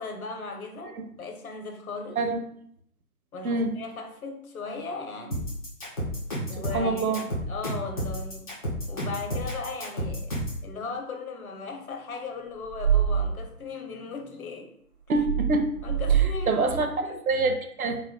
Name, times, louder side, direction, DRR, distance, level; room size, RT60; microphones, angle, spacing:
voice 1, 0.0-2.2 3.3-5.5 6.5-8.5 8.9-10.3 10.6-14.7 15.8-17.2, left 4 dB, 65° left, 2 dB, 0.9 m, -37 dB
sound 1, 5.3-10.6, equal, 25° left, 0.8 m, -31 dB
voice 2, 6.7-7.2 15.1-15.7 16.5-18.0, right 3 dB, 65° right, 5 dB, 0.7 m, -25 dB
sound 2, 12.7-13.3 15.1-16.3 16.6-16.8, right 9 dB, 35° right, 1.3 m, -24 dB
4.7 x 2.5 x 2.2 m, 0.69 s
hypercardioid pair, 165°, 47 cm